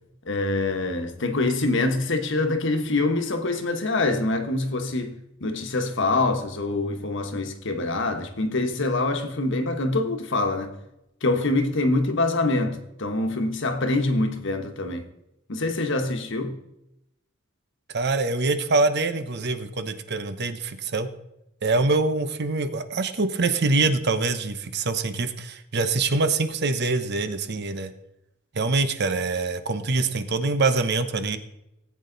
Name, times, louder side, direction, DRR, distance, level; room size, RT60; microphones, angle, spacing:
voice 1, 0.3-5.1 5.4-10.7 11.2-15.1 15.5-16.5, left 2 dB, 60° left, 1.3 m, -25 dB
voice 2, 17.9-21.1 21.6-27.9 28.5-31.4, right 3 dB, 55° right, 0.9 m, -24 dB
18.0 x 8.5 x 4.0 m
head